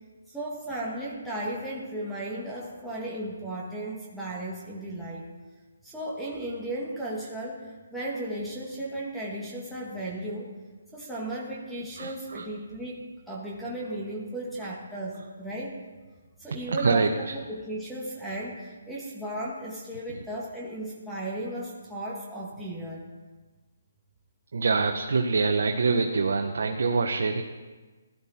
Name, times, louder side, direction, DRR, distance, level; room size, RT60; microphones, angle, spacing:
voice 1, 0.3-5.3 5.8-10.5 10.9-15.8 16.4-23.1, right 1 dB, ahead, -6 dB, 1.8 m, -35 dB
voice 2, 12.0-12.4 16.5-17.3 20.1-20.2 24.5-27.4, right 4 dB, 65° right, 3 dB, 1.1 m, -25 dB
16.0 x 12.0 x 4.3 m, 1.3 s
hypercardioid pair, 160°, 0 cm